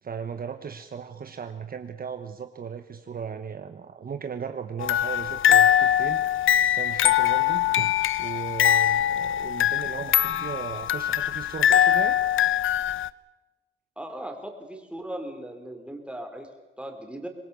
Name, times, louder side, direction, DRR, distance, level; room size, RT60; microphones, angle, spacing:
voice 1, 0.0-6.3 6.7-12.2, right 6 dB, 45° right, 8 dB, 1.1 m, -36 dB
sound 1, 4.8-13.1, left 10 dB, 70° left, 0.7 m, -22 dB
voice 2, 14.0-16.5 16.8-17.3, right 1 dB, 5° right, 4 dB, 3.8 m, -38 dB
24.5 x 21.0 x 7.0 m, 1.2 s
cardioid pair, 110°, 21 cm